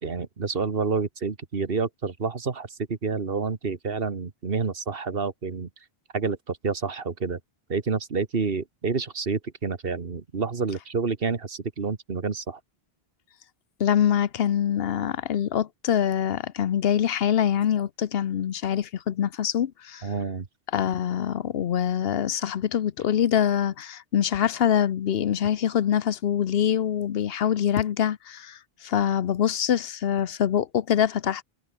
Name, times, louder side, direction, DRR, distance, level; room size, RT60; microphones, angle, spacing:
voice 1, 0.0-5.7 6.1-7.4 7.7-12.6 20.0-20.5, right 5 dB, 65° right, 1.7 m, -29 dB
voice 2, 13.8-20.1 20.7-31.4, left 9 dB, 75° left, 0.9 m, -24 dB
omnidirectional pair, 1.0 m